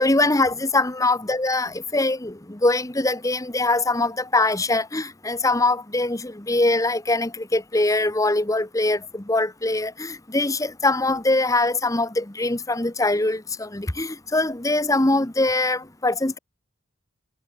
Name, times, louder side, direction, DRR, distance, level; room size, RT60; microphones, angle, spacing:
voice 1, 0.0-16.4, left 2 dB, 15° left, 1.1 m, -22 dB
head